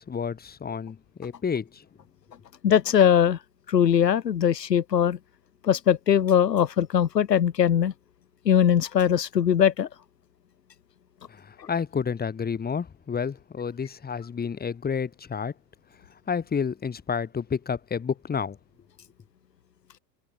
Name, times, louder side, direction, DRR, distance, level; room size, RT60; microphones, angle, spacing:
voice 1, 0.0-1.8 11.3-15.5 16.3-18.6, left 6 dB, 20° left, 3.3 m, -30 dB
voice 2, 2.6-3.4 3.7-5.2 5.6-7.9 8.4-9.9 11.6-11.7, left 9 dB, 80° left, 1.4 m, -21 dB
figure-of-eight pair, 85°, 49 cm